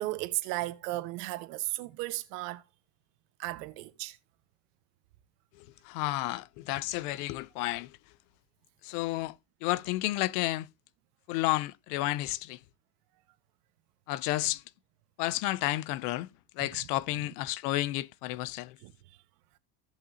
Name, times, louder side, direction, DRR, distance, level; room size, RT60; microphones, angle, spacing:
voice 1, 0.0-2.6 3.4-4.2 16.6-16.7 18.8-18.9, right 18 dB, 65° right, 1.3 m, -35 dB
voice 2, 5.8-8.0 8.8-9.3 9.6-10.7 11.3-12.6 14.1-14.6 15.2-16.3 16.6-18.8, left 17 dB, 65° left, 0.6 m, -31 dB
16.5 x 5.6 x 2.7 m
supercardioid pair, 145°, 50 cm